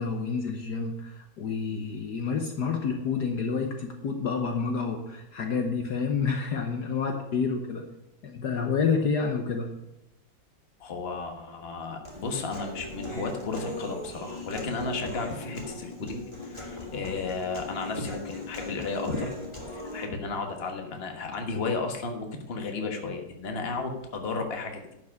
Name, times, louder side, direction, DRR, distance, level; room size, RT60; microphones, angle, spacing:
voice 1, 0.0-7.8 8.2-9.7, left 5 dB, 60° left, 4 dB, 1.5 m, -29 dB
voice 2, 10.8-19.3 19.7-24.9, left 3 dB, 35° left, 3 dB, 1.5 m, -33 dB
Human voice, 12.0-20.1, left 2 dB, 15° left, 2.2 m, -39 dB
11.5 x 6.1 x 6.5 m, 0.89 s
omnidirectional pair, 2.1 m